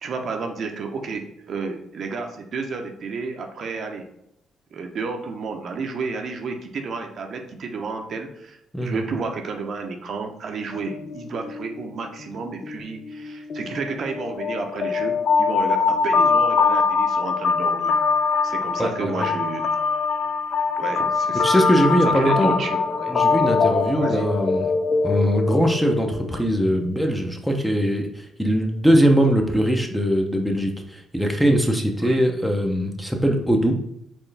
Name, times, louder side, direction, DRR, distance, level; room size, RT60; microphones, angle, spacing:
voice 1, 0.0-4.1 4.7-18.0 18.4-19.7 20.8-21.6 21.9-23.1 24.0-24.3 32.0-32.2, right 4 dB, 60° right, 4 dB, 0.7 m, -31 dB
sound 1, 10.7-11.9 12.2-12.4 12.6-27.0, left 5 dB, 50° left, 0.5 m, -23 dB
voice 2, 18.8-19.3 21.4-22.5 23.1-24.7 25.0-33.8, equal, ahead, 2 dB, 0.7 m, -21 dB
4.4 x 3.2 x 3.3 m, 0.81 s
cardioid pair, 90°, 0 cm